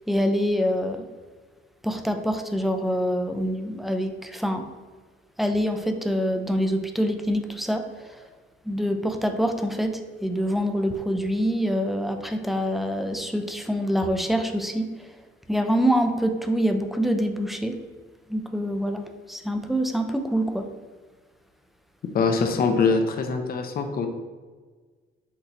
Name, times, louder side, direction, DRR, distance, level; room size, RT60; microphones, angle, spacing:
voice 1, 0.1-1.1 1.8-4.7 5.4-7.9 8.7-14.9 15.5-17.8 18.3-20.7, equal, ahead, 6 dB, 0.4 m, -25 dB
voice 2, 22.1-24.1, left 4 dB, 50° left, 5 dB, 0.6 m, -23 dB
6.0 x 2.8 x 2.6 m, 1.4 s
cardioid pair, 90°, 20 cm